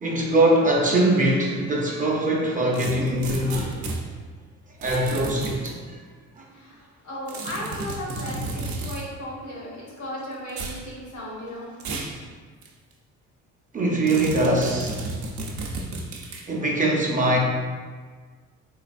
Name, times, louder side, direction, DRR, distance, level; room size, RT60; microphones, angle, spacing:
voice 1, 0.0-3.8 4.8-5.7 6.4-6.5 13.7-15.0 16.5-17.4, right 1 dB, 25° right, -2 dB, 0.6 m, -22 dB
duck tape stretch, 2.7-4.0 4.8-5.7 7.3-9.0 10.5-10.8 11.8-12.2 12.6-12.7 14.1-16.5, right 2 dB, 70° right, 0.6 m, -32 dB
voice 2, 7.0-11.7, equal, 80° left, -5 dB, 1.4 m, -35 dB
3.3 x 3.2 x 2.5 m, 1.5 s
cardioid pair, 90°, 30 cm